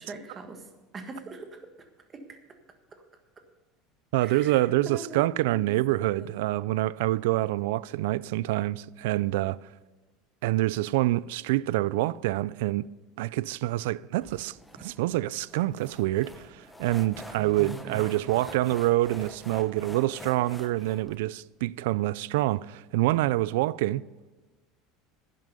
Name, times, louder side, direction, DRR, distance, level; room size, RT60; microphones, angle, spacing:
voice 1, 0.0-1.9 2.1-2.4 4.2-5.8 6.1-6.3 17.4-18.5, right 3 dB, 25° right, 1.6 m, -43 dB
voice 2, 4.1-9.6 10.4-12.8 13.2-24.0, right 17 dB, 85° right, 0.3 m, -26 dB
sound 1, 14.2-21.2, left 1 dB, 5° left, 0.9 m, -46 dB
11.0 x 11.0 x 5.4 m
supercardioid pair, 145°, 0 cm